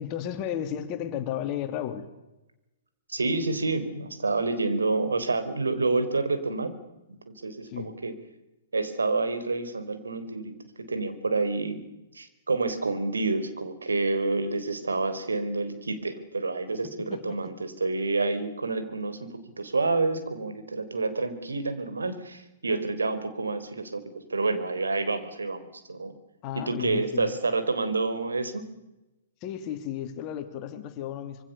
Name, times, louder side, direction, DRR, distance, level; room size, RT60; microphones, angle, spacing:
voice 1, 0.0-2.0 7.7-7.9 17.1-17.5 26.4-27.3 29.4-31.4, left 10 dB, 30° left, 8 dB, 2.8 m, -33 dB
voice 2, 3.1-6.7 7.3-8.1 8.7-10.5 10.9-11.8 12.1-24.0 24.3-26.1 26.6-28.7, right 3 dB, 70° right, 10 dB, 4.0 m, -28 dB
26.0 x 25.0 x 6.9 m, 0.97 s
figure-of-eight pair, 120°, 0 cm